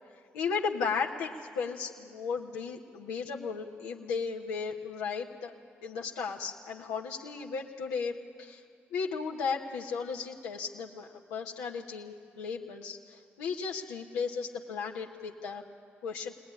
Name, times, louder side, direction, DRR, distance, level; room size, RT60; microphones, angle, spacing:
voice 1, 0.3-5.5 5.8-8.6 8.9-15.6 16.0-16.3, left 5 dB, 90° left, -1 dB, 1.2 m, -35 dB
23.0 x 18.5 x 9.9 m, 2.2 s
hypercardioid pair, 45°, 5 cm